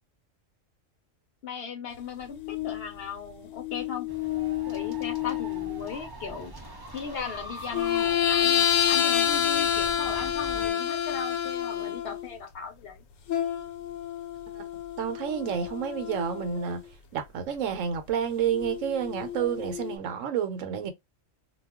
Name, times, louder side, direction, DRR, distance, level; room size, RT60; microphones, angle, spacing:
voice 1, 1.4-4.1 4.7-6.5 6.9-13.0, left 6 dB, 60° left, 0.8 m, -37 dB
sound 1, 2.4-2.9 3.5-5.9 7.7-12.4 13.3-16.8 18.5-20.0, left 10 dB, 85° left, 1.0 m, -29 dB
sound 2, 4.1-10.7, equal, 35° right, 0.4 m, -43 dB
voice 2, 14.5-16.8 17.1-20.9, right 8 dB, 85° right, 1.0 m, -30 dB
2.3 x 2.2 x 3.5 m
omnidirectional pair, 1.3 m